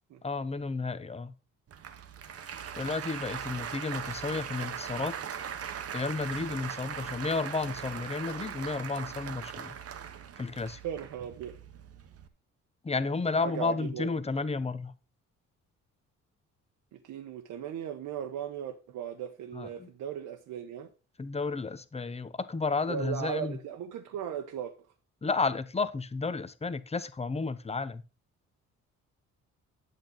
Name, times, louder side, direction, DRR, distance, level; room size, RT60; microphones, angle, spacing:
voice 1, 0.2-1.3 2.8-5.1 5.9-9.7 10.4-10.8 12.8-14.9 19.5-19.9 21.2-23.6 25.2-28.0, left 4 dB, 20° left, 1.0 m, -32 dB
Applause, 1.7-12.3, right 8 dB, 50° right, 1.0 m, -40 dB
voice 2, 10.8-11.6 13.4-14.1 16.9-20.9 22.9-24.7, right 9 dB, 80° right, 1.1 m, -37 dB
8.6 x 8.5 x 4.0 m
cardioid pair, 90°, 30 cm